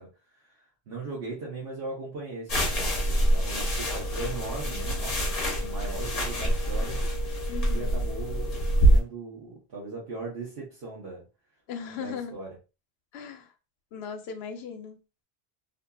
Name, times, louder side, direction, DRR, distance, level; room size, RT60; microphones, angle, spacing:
voice 1, 0.0-7.0 7.7-11.2 11.9-12.6, right 3 dB, 65° right, -5 dB, 1.1 m, -39 dB
sound 1, 2.5-9.0, right 1 dB, 40° left, 0.8 m, -25 dB
voice 2, 7.5-8.0 11.7-12.3 13.1-13.5 13.9-15.0, left 7 dB, 80° left, 7 dB, 0.8 m, -38 dB
2.7 x 2.5 x 2.2 m, 0.30 s
omnidirectional pair, 1.1 m